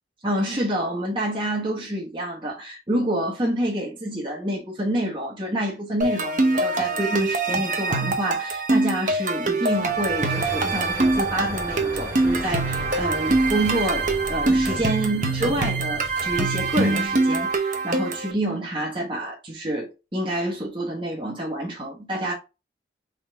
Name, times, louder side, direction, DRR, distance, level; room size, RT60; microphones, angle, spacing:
voice 1, 0.2-22.3, right 1 dB, 30° right, 1.2 m, -27 dB
sound 1, 6.0-18.3, right 3 dB, 45° right, 0.9 m, -24 dB
Sliding door, 9.7-17.4, equal, 10° right, 2.5 m, -35 dB
4.0 x 3.9 x 3.4 m
head